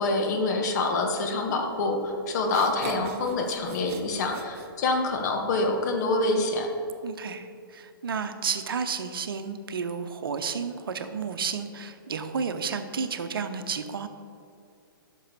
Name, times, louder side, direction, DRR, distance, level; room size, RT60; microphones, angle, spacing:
voice 1, 0.0-6.7, left 2 dB, 50° left, 3 dB, 1.3 m, -26 dB
sound 1, 2.4-5.3, right 5 dB, 40° right, 0.9 m, -40 dB
voice 2, 7.0-14.1, right 6 dB, 70° right, 8 dB, 0.8 m, -32 dB
10.0 x 6.3 x 4.1 m, 2.5 s
hypercardioid pair, 130°, 12 cm